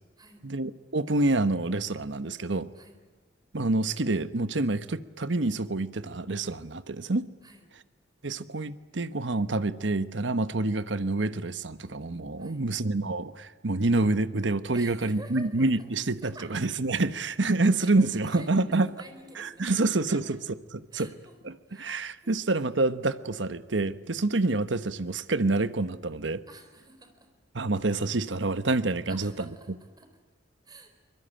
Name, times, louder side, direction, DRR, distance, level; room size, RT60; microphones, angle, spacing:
voice 1, 0.4-2.7 3.5-7.3 8.2-18.9 19.4-20.4 20.7-21.1 21.4-26.4 27.5-29.5, right 2 dB, 75° right, 13 dB, 1.2 m, -27 dB
voice 2, 12.4-12.7 14.7-15.9 16.2-16.6 17.8-20.3 20.9-21.4 21.7-22.5 26.5-27.3 29.1-29.7 30.0-30.1 30.7-30.9, right 2 dB, 20° right, 7 dB, 4.2 m, -50 dB
23.5 x 22.0 x 9.0 m, 1.3 s
head